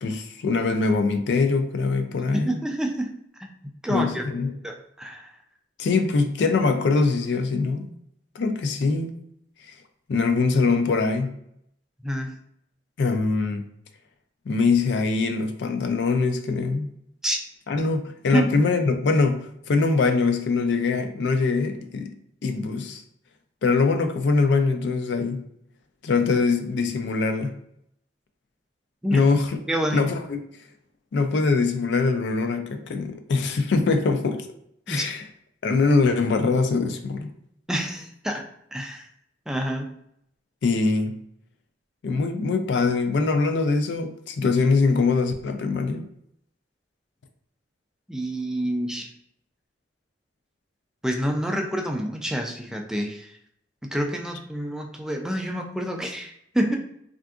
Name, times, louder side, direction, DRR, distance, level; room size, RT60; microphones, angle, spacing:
voice 1, 0.0-2.6 3.9-4.5 5.8-7.9 8.4-9.1 9.7-9.8 10.1-11.3 13.0-13.6 14.5-16.9 17.7-22.1 22.4-23.0 23.6-25.4 26.0-27.5 29.1-29.6 29.9-30.4 31.1-34.5 34.9-35.2 35.6-37.3 40.6-41.2 42.0-46.0, left 4 dB, 70° left, 7 dB, 0.4 m, -23 dB
voice 2, 2.3-3.2 3.8-4.2 4.6-5.3 12.0-12.4 17.2-17.4 18.3-18.6 29.0-29.2 29.7-30.0 34.9-35.1 37.7-39.1 39.5-40.0 48.1-49.1 51.0-53.3 53.9-56.8, right 1 dB, 5° right, 2 dB, 0.3 m, -27 dB
3.5 x 2.5 x 2.3 m, 0.73 s
head